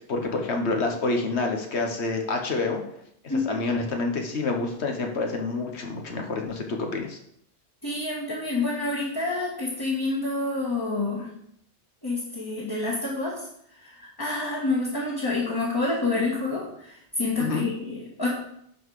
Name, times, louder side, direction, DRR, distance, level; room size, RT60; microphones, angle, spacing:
voice 1, 0.0-2.8 3.4-7.2 17.4-17.7, left 3 dB, 70° left, 3 dB, 1.5 m, -28 dB
voice 2, 3.3-3.6 7.8-11.3 12.0-13.5 13.8-18.3, left 3 dB, 20° left, -5 dB, 1.5 m, -28 dB
11.0 x 4.1 x 4.9 m, 0.73 s
omnidirectional pair, 1.2 m